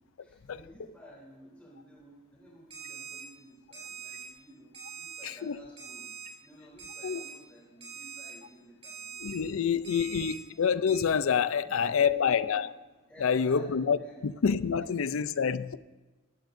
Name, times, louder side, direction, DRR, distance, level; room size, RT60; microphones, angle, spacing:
voice 1, 0.2-6.1 6.4-10.5 11.6-12.4 13.1-14.3 14.9-15.1, equal, 5° left, 3.2 m, -54 dB
Alarm, 2.7-3.2 3.7-4.2 4.7-5.2 5.8-6.3 6.8-7.3 7.8-8.3 8.8-9.3 9.8-10.3 10.9-11.0, right 7 dB, 30° right, 4.5 m, -43 dB
voice 2, 5.2-5.6 7.0-7.2 9.2-12.7 13.2-15.8, left 6 dB, 85° left, 0.5 m, -27 dB
18.0 x 15.0 x 2.6 m
head